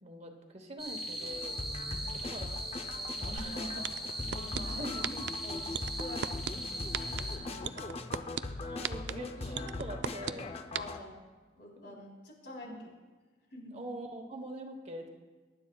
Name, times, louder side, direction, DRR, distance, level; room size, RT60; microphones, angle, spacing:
voice 1, 0.0-1.6 2.1-2.6 3.2-3.9 4.7-5.2 6.9-7.7 8.6-10.6 11.8-12.0 12.6-12.9 13.7-15.1, right 1 dB, 35° right, 4 dB, 1.1 m, -44 dB
sound 1, 0.8-7.4, equal, ahead, 2.4 m, -40 dB
sound 2, 1.2-11.0, left 2 dB, 30° left, 0.6 m, -40 dB
voice 2, 3.2-3.9 4.3-4.9 5.4-8.2 10.8-11.2 11.6-12.7 13.5-13.8, left 1 dB, 65° left, -2 dB, 3.7 m, -48 dB
sound 3, 3.4-3.5 3.8-4.6 5.0-5.3 5.7-6.5 6.9-7.2 7.6-8.4 8.8-9.1 9.5-10.3 10.7-10.8, right 8 dB, 60° right, 0.4 m, -33 dB
23.0 x 11.0 x 2.3 m, 1.3 s
head